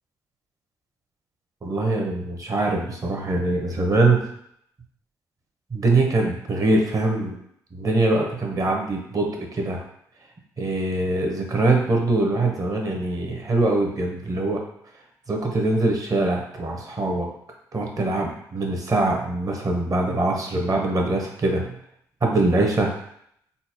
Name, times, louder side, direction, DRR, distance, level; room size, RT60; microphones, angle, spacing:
voice 1, 1.6-4.2 5.7-7.4 7.7-9.8 10.6-14.6 15.3-17.3 17.7-21.7 22.2-22.9, right 2 dB, 40° right, 1 dB, 0.9 m, -23 dB
3.9 x 2.1 x 2.8 m, 0.71 s
hypercardioid pair, 50°, 9 cm